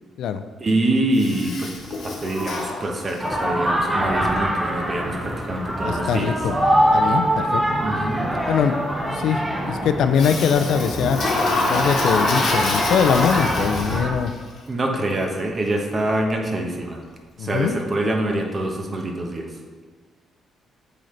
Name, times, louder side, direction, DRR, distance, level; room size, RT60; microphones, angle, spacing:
voice 1, 0.6-1.7 2.0-6.3 7.8-8.3 14.7-17.0 17.4-19.5, right 1 dB, 35° right, 2 dB, 1.0 m, -25 dB
Toilet flush, 1.1-3.4 10.2-14.3, left 2 dB, 60° left, 1.1 m, -25 dB
sound 1, 3.2-14.1, equal, 10° right, 0.9 m, -24 dB
voice 2, 5.8-6.6 6.9-7.8 8.5-8.8 9.1-11.4 11.7-14.3 17.4-17.8, left 7 dB, 75° left, 10 dB, 0.3 m, -22 dB
7.7 x 3.9 x 3.2 m, 1.5 s
cardioid pair, 90°, 0 cm